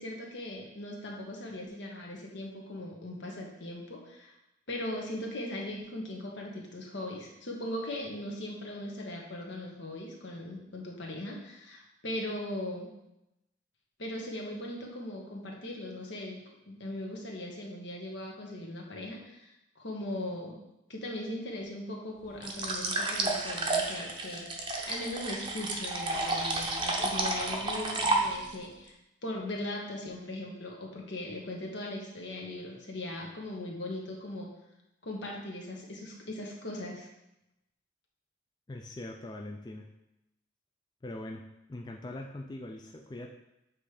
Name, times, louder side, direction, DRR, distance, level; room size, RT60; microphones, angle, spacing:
voice 1, 0.0-4.3 4.7-12.9 14.0-16.3 16.7-20.6 20.9-28.9 29.2-34.5 35.0-37.1, left 1 dB, 75° left, -1 dB, 1.4 m, -39 dB
sound 1, 22.4-28.6, right 2 dB, 25° right, 0.7 m, -31 dB
voice 2, 38.7-39.9 41.0-41.4 41.7-43.3, left 1 dB, 20° left, 2 dB, 0.4 m, -41 dB
7.6 x 3.3 x 4.9 m, 0.89 s
head